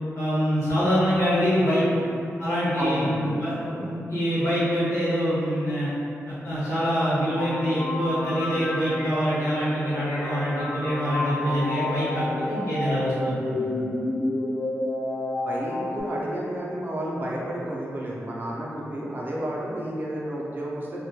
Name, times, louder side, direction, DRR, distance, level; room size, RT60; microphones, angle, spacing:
voice 1, 0.1-1.8 2.4-5.9 6.3-13.6, equal, 75° left, -11 dB, 0.8 m, -25 dB
voice 2, 2.8-3.4 15.5-21.0, right 1 dB, 40° right, -4 dB, 0.4 m, -31 dB
sound 1, 7.3-16.0, left 2 dB, 90° left, 0.3 m, -30 dB
2.1 x 2.1 x 2.7 m, 2.6 s
wide cardioid pair, 165°, 5 cm